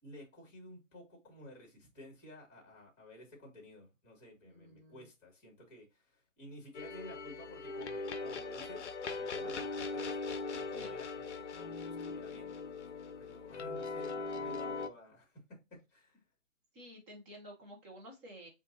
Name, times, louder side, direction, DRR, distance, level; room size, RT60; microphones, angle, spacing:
voice 1, 0.0-12.6 13.2-16.2, left 1 dB, 20° left, 2.4 m, -53 dB
voice 2, 4.5-5.1 9.4-9.5 10.7-10.9 16.7-18.5, equal, 10° right, 0.9 m, -52 dB
sound 1, 6.7-14.9, left 4 dB, 65° left, 0.6 m, -40 dB
7.6 x 2.6 x 2.7 m
hypercardioid pair, 150°, 38 cm